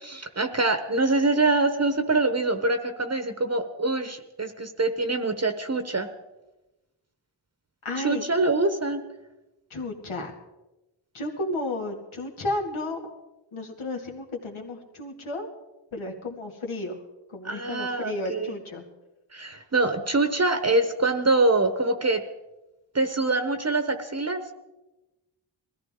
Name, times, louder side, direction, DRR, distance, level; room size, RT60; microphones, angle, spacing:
voice 1, 0.0-6.1 8.0-9.0 17.4-18.5 19.3-22.2 22.9-24.4, right 2 dB, 30° right, 8 dB, 1.0 m, -24 dB
voice 2, 7.8-8.2 9.7-10.3 11.1-13.0 13.5-15.5 15.9-17.0 17.3-18.8, left 2 dB, 80° left, 1 dB, 2.4 m, -32 dB
21.0 x 14.5 x 3.7 m, 1.0 s
wide cardioid pair, 90°, 48 cm